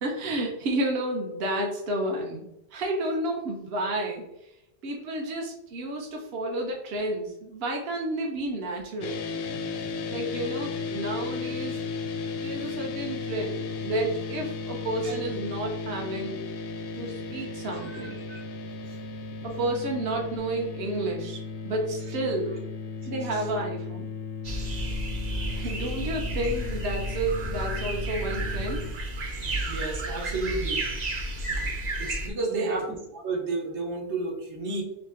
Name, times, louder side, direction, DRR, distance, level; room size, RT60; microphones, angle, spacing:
voice 1, 0.0-2.4 2.7-4.5 4.8-9.2 10.1-11.8 12.3-16.4 16.9-18.2 19.4-22.7 23.1-24.1 25.5-28.8 32.5-32.8, right 1 dB, 65° right, 0 dB, 1.0 m, -31 dB
sound 1, 9.0-28.9, left 4 dB, 70° left, 0.7 m, -35 dB
voice 2, 17.7-18.5 18.9-19.0 23.3-23.5 25.5-25.7 29.6-30.9 32.0-32.8 33.1-34.8, right 3 dB, 85° right, 0 dB, 1.3 m, -32 dB
sound 2, 24.4-32.3, right 1 dB, 45° right, 0.7 m, -31 dB
3.6 x 3.2 x 3.6 m, 0.83 s
omnidirectional pair, 1.1 m